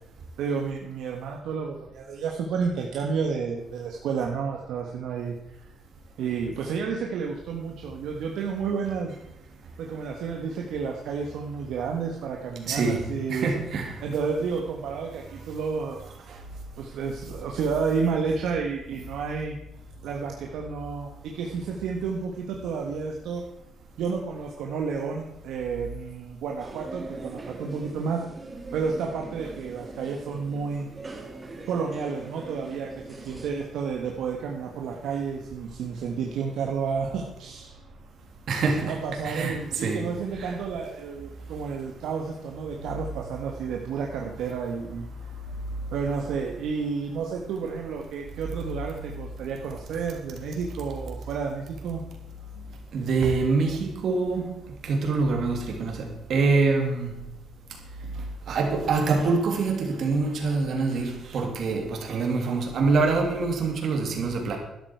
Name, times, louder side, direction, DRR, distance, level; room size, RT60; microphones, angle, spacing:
voice 1, 0.4-5.3 6.2-9.2 9.8-13.5 14.0-16.1 16.8-19.6 20.0-23.4 24.0-28.2 28.7-30.9 31.7-37.7 38.9-45.1 45.9-52.0, right 5 dB, 85° right, 1.5 m, -31 dB
voice 2, 12.7-14.0 38.5-39.0 39.2-40.1 40.4-40.5 52.9-54.5 54.8-57.1 58.5-64.6, right 4 dB, 65° right, 3.2 m, -25 dB
sound 1, 26.6-33.5, right 3 dB, 30° right, 2.3 m, -42 dB
13.0 x 11.0 x 4.8 m
cardioid pair, 90°, 0 cm